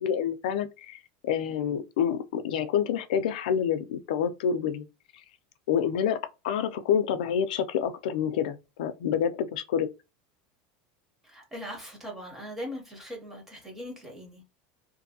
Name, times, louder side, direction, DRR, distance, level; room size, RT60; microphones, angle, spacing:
voice 1, 0.0-4.9 5.7-6.2 6.4-9.9, left 8 dB, 90° left, 0.4 m, -28 dB
voice 2, 11.2-14.4, equal, 10° right, 0.7 m, -40 dB
2.5 x 2.5 x 2.7 m
supercardioid pair, 180°, 4 cm